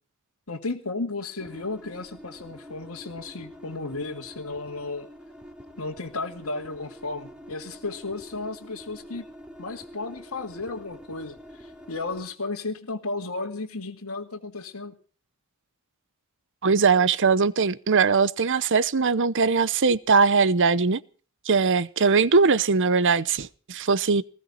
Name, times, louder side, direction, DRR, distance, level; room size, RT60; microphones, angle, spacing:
voice 1, 0.5-5.1 5.8-9.3 9.6-15.0, left 3 dB, 85° left, 2.1 m, -34 dB
sound 1, 1.4-12.2, equal, 5° right, 2.8 m, -46 dB
voice 2, 16.6-21.0 21.5-24.2, right 4 dB, 60° right, 0.8 m, -21 dB
20.0 x 16.5 x 4.1 m
head